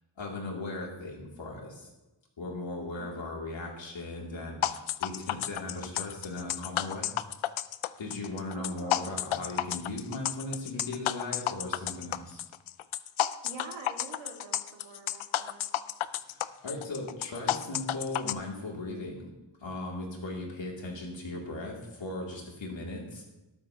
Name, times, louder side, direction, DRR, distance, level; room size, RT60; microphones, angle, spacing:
voice 1, 0.2-1.9 2.4-7.1 8.0-12.4 16.2-19.3 19.6-23.3, left 2 dB, 70° left, -1 dB, 3.0 m, -38 dB
sound 1, 4.6-18.3, left 12 dB, 85° left, 0.6 m, -31 dB
voice 2, 8.5-9.1 13.4-15.6, right 3 dB, 75° right, 1 dB, 2.3 m, -46 dB
13.5 x 12.5 x 3.0 m, 1.0 s
wide cardioid pair, 130°, 47 cm